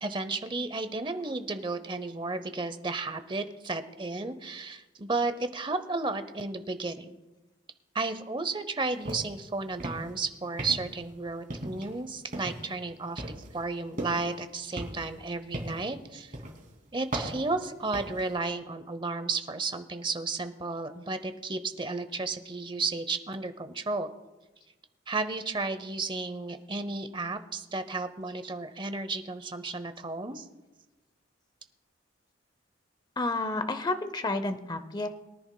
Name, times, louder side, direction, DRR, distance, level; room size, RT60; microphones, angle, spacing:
voice 1, 0.0-7.2 7.9-13.2 13.5-16.3 16.9-24.1 25.1-30.4, right 3 dB, 25° right, 11 dB, 0.7 m, -33 dB
sound 1, 9.0-9.4 9.7-10.2 10.6-11.1 11.5-12.0 12.3-12.7 13.2-14.4 14.8-15.9 16.3-16.6 17.1-18.3, right 1 dB, 45° right, 2.4 m, -37 dB
voice 2, 33.2-35.1, left 2 dB, 20° left, 10 dB, 0.7 m, -30 dB
22.5 x 10.5 x 2.2 m, 1.1 s
head